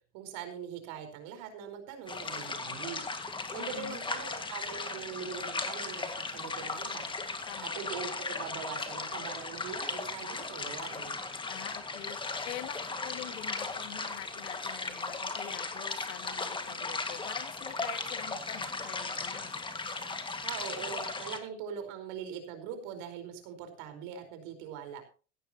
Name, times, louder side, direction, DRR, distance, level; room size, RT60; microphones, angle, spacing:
voice 1, 0.1-3.0 3.5-7.1 7.6-11.2 20.4-25.0, right 7 dB, 60° right, 7 dB, 4.7 m, -42 dB
sound 1, 2.1-21.4, left 3 dB, 15° left, 2.0 m, -37 dB
voice 2, 3.6-4.0 7.5-7.8 11.5-12.2 12.4-19.6, left 12 dB, 85° left, 9 dB, 2.0 m, -45 dB
16.5 x 13.5 x 3.0 m, 0.37 s
supercardioid pair, 120°, 35 cm